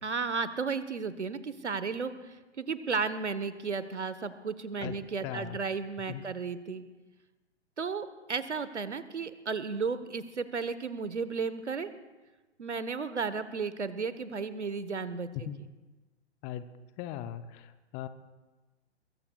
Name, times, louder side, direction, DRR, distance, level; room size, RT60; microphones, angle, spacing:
voice 1, 0.0-6.8 7.8-11.9 12.6-15.3, right 5 dB, 80° right, 13 dB, 1.2 m, -34 dB
voice 2, 5.2-5.6 6.1-6.2 15.4-15.6 16.4-16.6 17.0-18.1, left 11 dB, 20° left, 12 dB, 0.6 m, -39 dB
23.0 x 22.5 x 2.4 m, 1.2 s
figure-of-eight pair, 120°, 34 cm